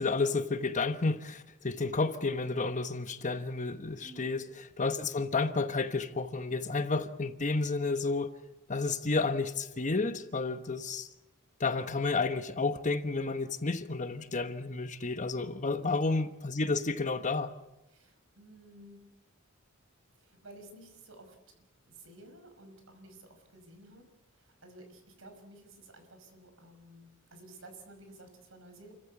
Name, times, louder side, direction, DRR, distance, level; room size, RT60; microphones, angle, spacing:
voice 1, 0.0-4.4 4.8-8.4 8.7-11.1 11.6-17.5, left 3 dB, 35° left, 1.2 m, -31 dB
voice 2, 4.0-4.4 15.8-16.2 17.9-19.0 20.1-21.4 21.8-24.1 24.3-28.9, right 1 dB, 70° right, 5.8 m, -53 dB
29.5 x 15.0 x 8.2 m
head